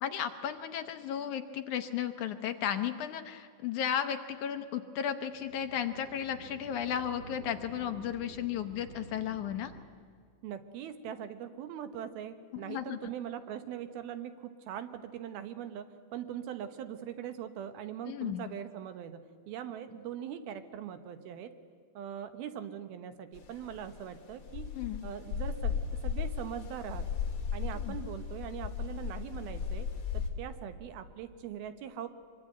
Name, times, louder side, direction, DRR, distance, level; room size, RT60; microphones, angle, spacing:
voice 1, 0.0-9.7 12.5-13.1 18.1-18.5 24.8-25.0 27.7-28.0, left 9 dB, 70° left, 7 dB, 1.9 m, -34 dB
sound 1, 5.2-9.8, right 4 dB, 65° right, 3.1 m, -50 dB
voice 2, 10.4-21.5 21.9-24.7 25.0-27.1 27.5-29.9 30.1-32.1, right 9 dB, 80° right, 9 dB, 3.1 m, -41 dB
sound 2, 23.3-30.3, left 6 dB, 40° left, 2.7 m, -36 dB
24.5 x 23.0 x 9.1 m, 2.1 s
omnidirectional pair, 4.3 m